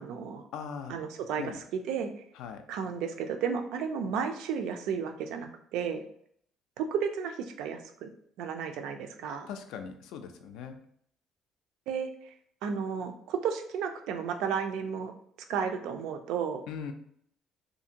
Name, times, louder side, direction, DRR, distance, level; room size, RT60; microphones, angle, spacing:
voice 1, 0.0-0.4 0.9-2.1 2.7-6.0 6.8-8.1 8.4-9.5 11.9-12.3 12.6-15.1 15.5-16.6, right 7 dB, 80° right, 6 dB, 0.3 m, -33 dB
voice 2, 0.5-1.0 1.4-1.6 2.4-2.6 9.5-10.8 16.7-16.9, left 7 dB, 80° left, 7 dB, 0.3 m, -40 dB
2.6 x 2.5 x 2.7 m, 0.67 s
cardioid pair, 155°, 0 cm